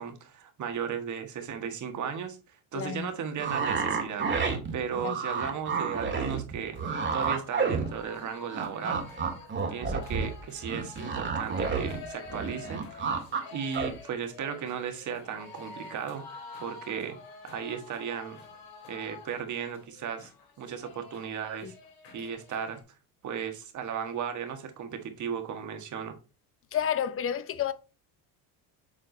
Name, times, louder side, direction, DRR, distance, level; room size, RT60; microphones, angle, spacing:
voice 1, 0.0-4.3 4.7-6.8 7.1-9.0 9.7-13.1 13.5-17.2 17.4-18.4 18.9-20.3 20.6-21.7 22.1-22.8 23.2-26.2, right 7 dB, 45° right, 1.6 m, -36 dB
voice 2, 2.7-3.1 5.0-5.2 21.6-21.7 26.7-27.7, left 9 dB, 30° left, 0.8 m, -30 dB
sound 1, 3.4-8.3 8.5-12.0 12.3-13.4 13.7-13.9, right 5 dB, 25° right, 1.8 m, -30 dB
sound 2, 6.7-22.8, left 3 dB, 85° left, 3.5 m, -48 dB
7.6 x 3.8 x 3.9 m
supercardioid pair, 110°, 42 cm